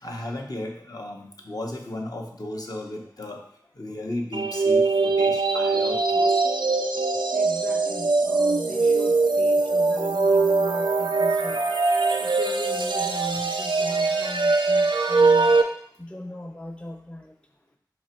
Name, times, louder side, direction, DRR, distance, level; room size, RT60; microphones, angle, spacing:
voice 1, 0.0-3.4 3.8-6.3 8.7-8.8 10.9-11.0 11.4-12.1 14.3-14.4 15.1-15.2, left 1 dB, 55° left, 1 dB, 0.8 m, -35 dB
sound 1, 4.3-15.6, right 3 dB, 80° right, 0.4 m, -22 dB
voice 2, 7.3-11.6 12.2-15.6 16.0-17.3, left 1 dB, 15° left, 3 dB, 0.4 m, -38 dB
3.9 x 2.9 x 4.3 m, 0.66 s
wide cardioid pair, 40°, 8 cm